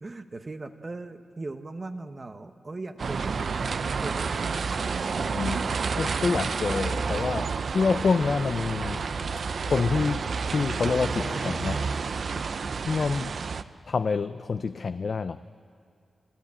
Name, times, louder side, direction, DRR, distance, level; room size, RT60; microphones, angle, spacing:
voice 1, 0.0-5.2 5.6-5.7 13.1-13.6, right 2 dB, 30° right, 8 dB, 0.9 m, -39 dB
sound 1, 3.0-13.6, right 5 dB, 60° right, 0.6 m, -30 dB
sound 2, 4.2-11.9, left 3 dB, 70° left, 3.1 m, -45 dB
voice 2, 5.3-5.7 5.9-9.0 9.6-11.9 12.9-13.3 13.9-15.4, left 4 dB, 50° left, 11 dB, 0.4 m, -27 dB
28.0 x 15.0 x 8.6 m, 2.5 s
wide cardioid pair, 130°, 0 cm